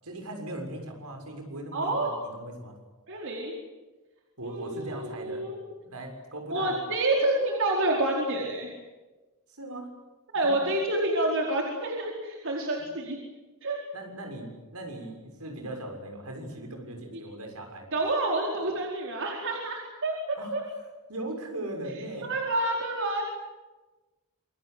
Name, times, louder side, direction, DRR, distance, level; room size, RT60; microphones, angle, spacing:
voice 1, 0.0-2.8 4.4-5.4 5.8-6.8 9.6-9.9 10.3-10.7 13.9-17.9 20.4-20.6 21.1-22.4, right 1 dB, 80° right, 3 dB, 6.9 m, -39 dB
voice 2, 1.7-2.2 3.1-3.5 4.4-5.6 6.5-8.7 10.3-13.2 13.6-13.8 17.9-20.1 20.5-20.6 22.2-23.2, right 2 dB, 60° right, -1 dB, 4.7 m, -28 dB
27.5 x 23.5 x 8.2 m, 1.2 s
head